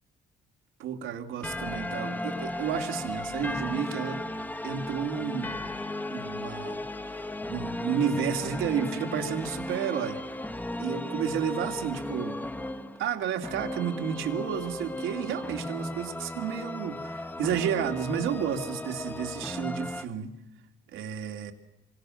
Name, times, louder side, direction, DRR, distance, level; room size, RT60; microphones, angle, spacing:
voice 1, 0.8-4.2 4.6-5.6 6.1-10.2 10.8-12.4 13.0-20.3 20.9-21.5, right 8 dB, 90° right, 4 dB, 2.8 m, -31 dB
sound 1, 1.4-20.1, left 1 dB, 10° left, 1.1 m, -35 dB
27.0 x 24.0 x 6.5 m, 0.92 s
cardioid pair, 90°, 20 cm